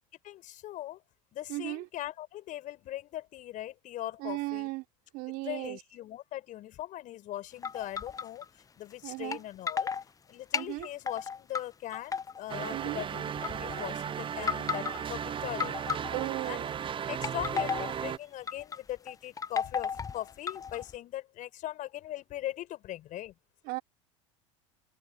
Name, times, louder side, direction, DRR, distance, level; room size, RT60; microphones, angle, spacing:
voice 1, 0.2-1.0 1.3-4.7 5.4-8.5 8.8-9.9 10.3-15.8 16.5-16.7 17.1-23.3, left 14 dB, 50° left, 5.7 m, -40 dB
voice 2, 1.5-1.9 4.2-4.8 5.1-5.8 9.0-9.4 10.5-10.9 12.7-13.0 16.1-16.7 23.6-23.8, right 22 dB, 60° right, 3.1 m, -36 dB
sound 1, 7.6-8.4 9.3-9.4 9.7-10.0 10.5-11.6 11.9-12.7 13.4-13.8 14.4-15.0 15.6-16.5 17.1-18.0 18.5-18.8 19.1-20.9, left 6 dB, 20° left, 0.8 m, -34 dB
sound 2, 12.5-18.2, right 8 dB, 30° right, 0.9 m, -36 dB
hypercardioid pair, 80°, 17 cm